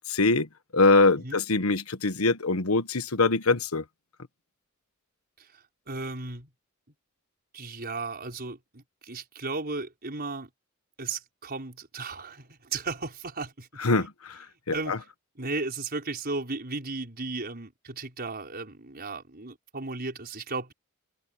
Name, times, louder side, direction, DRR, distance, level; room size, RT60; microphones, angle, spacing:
voice 1, 0.1-0.5 0.7-3.8 13.8-14.4 14.7-15.0, left 3 dB, 90° left, 1.3 m, -23 dB
voice 2, 5.4-6.5 7.5-10.5 11.0-13.7 14.7-15.1 15.4-20.7, right 3 dB, 45° right, 5.5 m, -35 dB
head